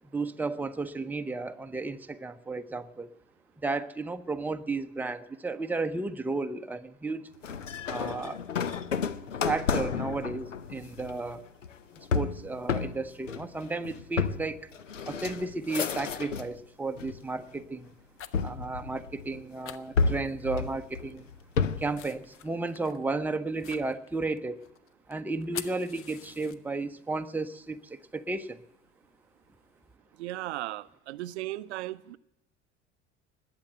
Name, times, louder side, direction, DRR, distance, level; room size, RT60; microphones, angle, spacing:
voice 1, 0.1-3.1 3.6-7.3 7.9-8.4 9.4-11.4 12.0-14.7 15.1-17.9 18.4-21.3 21.8-24.6 25.1-28.6, right 3 dB, 5° right, 7 dB, 0.7 m, -33 dB
sound 1, 7.4-16.6 17.0-17.6 18.3-19.4 20.0-22.0, left 5 dB, 85° left, 0.6 m, -31 dB
sound 2, 18.0-18.6 18.9-19.0 19.2-19.3 19.6-20.7 21.0-27.0 27.3-29.8, left 9 dB, 35° left, 0.9 m, -47 dB
voice 2, 30.2-32.2, right 16 dB, 65° right, 16 dB, 0.5 m, -36 dB
20.5 x 7.8 x 8.9 m, 0.83 s
figure-of-eight pair, 65°, 36 cm